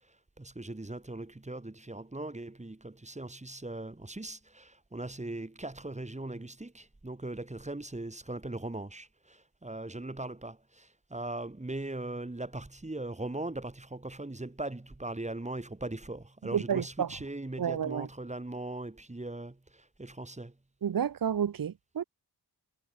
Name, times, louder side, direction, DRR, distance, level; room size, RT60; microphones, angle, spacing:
voice 1, 0.4-20.5, right 2 dB, 15° right, 1.9 m, -39 dB
voice 2, 16.5-17.1 17.6-18.1 20.8-22.0, right 8 dB, 55° right, 0.7 m, -30 dB
wide cardioid pair, 75°, 42 cm